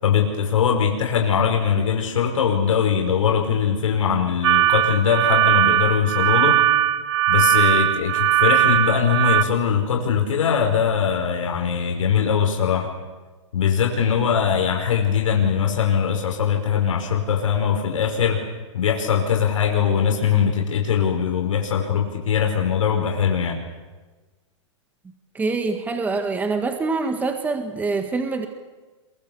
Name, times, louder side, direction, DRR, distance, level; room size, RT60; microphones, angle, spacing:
voice 1, 0.0-6.6 7.3-12.9 13.5-18.4 18.7-23.6, left 7 dB, 80° left, 2 dB, 5.1 m, -21 dB
sound 1, 4.4-9.4, right 12 dB, 60° right, 1.4 m, -19 dB
voice 2, 25.3-28.5, right 3 dB, 10° right, 6 dB, 1.8 m, -25 dB
28.0 x 23.0 x 7.1 m, 1.3 s
hypercardioid pair, 140°, 16 cm